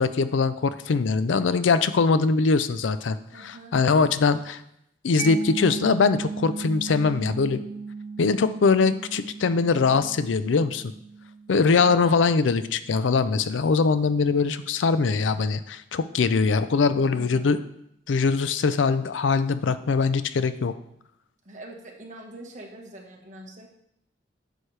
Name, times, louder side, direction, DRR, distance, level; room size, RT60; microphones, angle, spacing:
voice 1, 0.0-4.6 5.0-7.6 8.2-10.8 11.5-17.6 18.1-20.7, left 4 dB, 85° left, 13 dB, 0.5 m, -22 dB
voice 2, 3.3-3.7 11.6-12.2 17.1-17.6 21.4-23.7, right 1 dB, 40° right, 0 dB, 1.4 m, -43 dB
Mallet percussion, 5.2-12.6, right 5 dB, 60° right, 0.5 m, -36 dB
9.8 x 6.3 x 3.3 m, 0.77 s
head